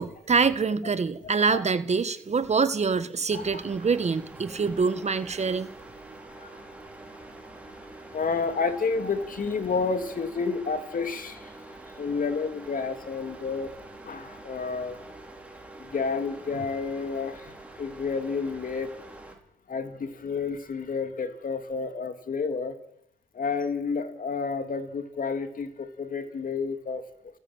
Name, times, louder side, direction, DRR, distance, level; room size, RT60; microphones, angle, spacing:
voice 1, 0.0-5.7, right 5 dB, 35° right, 12 dB, 1.4 m, -25 dB
sound 1, 3.3-19.3, right 2 dB, 5° right, 5.4 m, -46 dB
voice 2, 8.1-11.6 12.0-13.7 14.0-15.0 15.8-17.5 17.8-18.9 19.7-22.8 23.3-27.0, left 4 dB, 45° left, 8 dB, 2.9 m, -30 dB
29.5 x 10.5 x 8.9 m, 0.76 s
cardioid pair, 90°, 20 cm